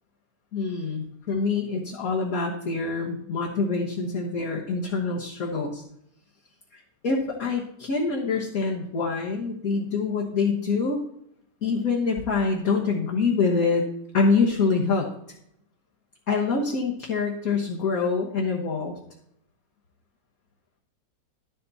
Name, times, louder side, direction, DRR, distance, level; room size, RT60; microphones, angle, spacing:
voice 1, 0.5-5.8 6.7-11.0 11.6-13.8 14.1-15.1 16.3-18.9, left 4 dB, 55° left, -2 dB, 1.7 m, -25 dB
11.5 x 8.1 x 4.1 m, 0.72 s
omnidirectional pair, 1.9 m